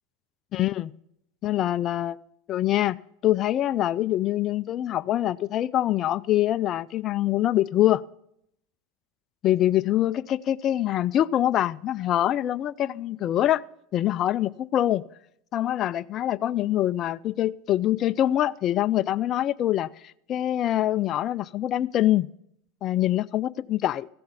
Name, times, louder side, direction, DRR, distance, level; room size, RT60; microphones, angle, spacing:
voice 1, 0.5-0.9 1.4-2.2 2.5-8.0 9.4-13.6 13.9-15.0 15.5-22.3 22.8-24.1, left 13 dB, 40° left, 0.4 m, -24 dB
15.0 x 7.8 x 7.3 m
supercardioid pair, 120°, 0 cm